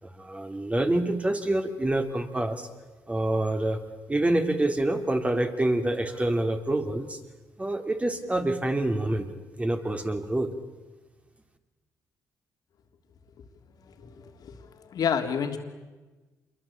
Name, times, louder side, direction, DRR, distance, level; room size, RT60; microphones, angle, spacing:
voice 1, 0.0-2.7 3.1-3.8 4.1-7.2 7.6-9.3 9.6-10.5, right 1 dB, 20° right, 6 dB, 3.4 m, -26 dB
voice 2, 14.0-14.5 14.9-15.6, left 7 dB, 65° left, 6 dB, 3.4 m, -29 dB
27.5 x 23.0 x 8.8 m, 1.2 s
cardioid pair, 70°, 7 cm